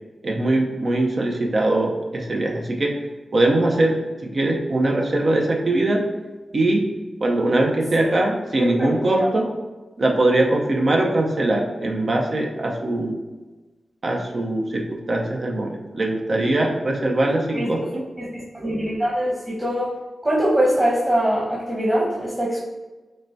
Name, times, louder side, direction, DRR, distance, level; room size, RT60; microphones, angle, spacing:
voice 1, 0.2-3.0 3.3-6.0 6.5-6.8 7.2-9.5 10.0-13.2 14.0-18.0, right 2 dB, 60° right, 0 dB, 0.6 m, -21 dB
voice 2, 8.6-9.3 17.5-17.7 18.2-19.9 20.2-22.6, equal, 20° right, -6 dB, 1.1 m, -23 dB
6.1 x 2.3 x 2.7 m, 1.2 s
cardioid pair, 45°, 0 cm